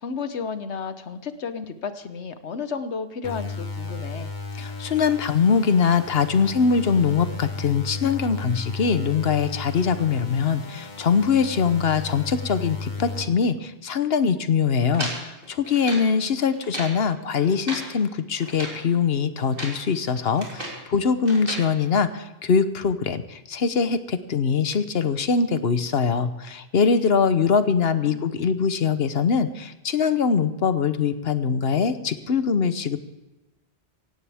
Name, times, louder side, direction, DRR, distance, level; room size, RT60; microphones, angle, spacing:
voice 1, 0.0-4.3 16.2-16.4 27.9-28.2, left 5 dB, 90° left, 10 dB, 1.3 m, -33 dB
sound 1, 3.2-13.2, left 3 dB, 45° left, 1.7 m, -34 dB
voice 2, 4.6-33.0, left 6 dB, 65° left, 11 dB, 1.1 m, -22 dB
sound 2, 14.9-16.1 16.5-17.0 17.4-17.9 18.4-18.8 19.4-19.8 20.1-20.8 21.3-21.7, right 1 dB, 55° right, 4.0 m, -34 dB
17.0 x 17.0 x 3.5 m, 1.0 s
omnidirectional pair, 1.1 m